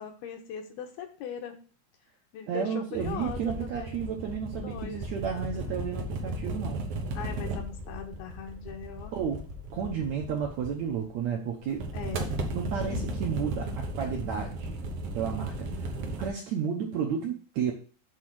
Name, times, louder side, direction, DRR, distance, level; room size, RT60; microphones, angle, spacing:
voice 1, 0.0-1.6 2.3-4.1 4.6-5.0 5.5-5.9 7.1-9.1 10.8-11.0 11.9-12.3 12.7-13.1, left 8 dB, 80° left, 4 dB, 3.0 m, -40 dB
voice 2, 2.5-6.9 9.1-9.4 9.7-11.9 12.5-14.8 15.1-17.7, right 7 dB, 70° right, 1 dB, 1.7 m, -32 dB
sound 1, 2.9-11.0 11.7-16.3, right 1 dB, 90° right, 1.2 m, -35 dB
8.2 x 3.7 x 6.1 m, 0.38 s
omnidirectional pair, 4.4 m